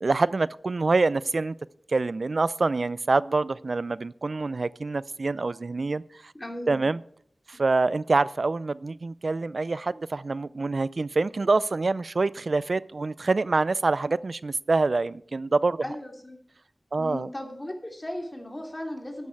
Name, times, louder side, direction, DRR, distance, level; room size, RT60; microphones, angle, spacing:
voice 1, 0.0-1.5 1.9-6.3 6.7-7.0 7.5-15.8 16.9-17.3, right 3 dB, 65° right, 19 dB, 0.4 m, -26 dB
voice 2, 6.3-6.8 7.5-7.6 15.8-16.4 17.0-19.3, left 1 dB, 30° left, 2 dB, 2.9 m, -36 dB
12.5 x 9.7 x 4.7 m, 0.65 s
wide cardioid pair, 50°, 0 cm